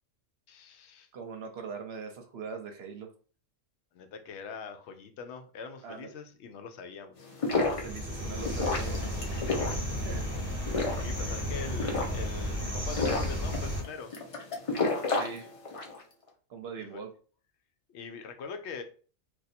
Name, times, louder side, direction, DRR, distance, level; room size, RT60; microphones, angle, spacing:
voice 1, 0.5-1.1 3.9-7.2 9.3-9.8 11.0-14.2 16.8-17.0 17.9-18.8, left 5 dB, 70° left, 7 dB, 0.8 m, -43 dB
voice 2, 1.1-3.1 5.8-6.1 7.5-9.7 10.0-10.3 15.1-15.5 16.5-17.1, right 5 dB, 65° right, 5 dB, 0.8 m, -41 dB
sound 1, 7.2-16.0, left 3 dB, 40° left, 0.5 m, -32 dB
sound 2, 7.5-13.8, equal, 10° right, 0.8 m, -33 dB
2.6 x 2.3 x 4.1 m, 0.39 s
omnidirectional pair, 1.3 m